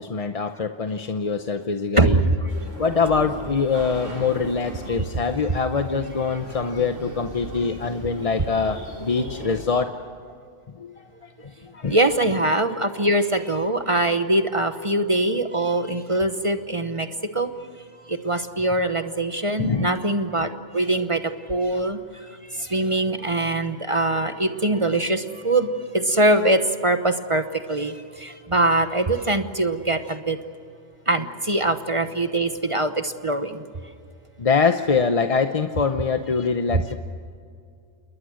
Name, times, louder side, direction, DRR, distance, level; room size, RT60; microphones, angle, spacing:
voice 1, 0.0-2.2 2.8-10.0 10.8-12.0 19.6-19.9 21.0-21.1 34.4-37.0, left 5 dB, 35° left, 7 dB, 0.7 m, -24 dB
voice 2, 2.0-2.3 11.9-17.1 17.3-17.5 18.1-21.2 21.5-22.0 22.6-27.4 27.7-27.9 28.2-30.4 31.1-33.6, right 1 dB, 30° right, 8 dB, 1.0 m, -22 dB
sound 1, 2.5-9.7, equal, 80° right, 5.3 m, -37 dB
28.5 x 21.0 x 6.4 m, 2.4 s
omnidirectional pair, 1.2 m